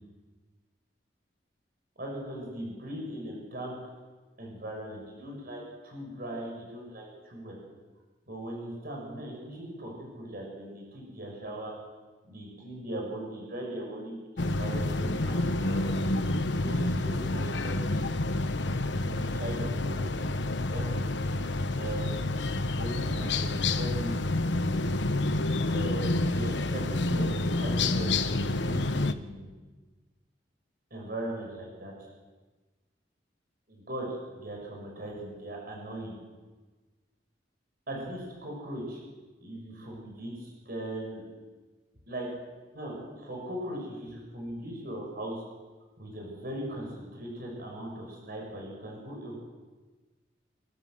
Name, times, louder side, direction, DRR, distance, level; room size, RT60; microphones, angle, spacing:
voice 1, 2.0-3.7 4.4-7.6 8.3-11.7 12.2-14.2 14.5-15.9 16.5-17.9 18.9-20.2 20.7-20.9 21.7-22.4 22.7-24.3 25.7-29.6 30.9-31.9 33.7-36.2 37.9-39.0 39.4-41.2 42.1-42.3 42.7-45.4 46.0-49.5, right 1 dB, 55° right, -1 dB, 6.8 m, -39 dB
sound 1, 14.4-29.1, left 2 dB, 80° left, 1.1 m, -28 dB
30.0 x 13.5 x 7.9 m, 1.3 s
head